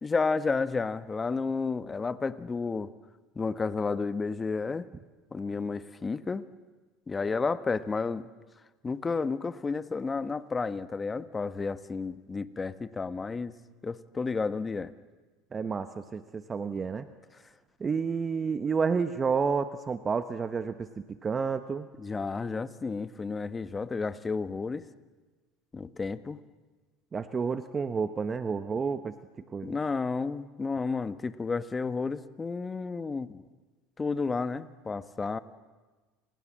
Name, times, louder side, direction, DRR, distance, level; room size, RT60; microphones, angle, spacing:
voice 1, 0.0-2.9 3.3-4.9 5.3-6.4 7.1-8.3 8.8-13.5 13.8-14.9 22.0-24.8 25.7-26.4 29.6-33.4 34.0-35.4, left 4 dB, 20° left, 13 dB, 1.3 m, -31 dB
voice 2, 15.5-17.1 17.8-21.9 27.1-29.1 29.5-29.7, right 5 dB, 25° right, 10 dB, 1.1 m, -30 dB
30.0 x 26.0 x 7.5 m, 1.3 s
supercardioid pair, 110°, 0 cm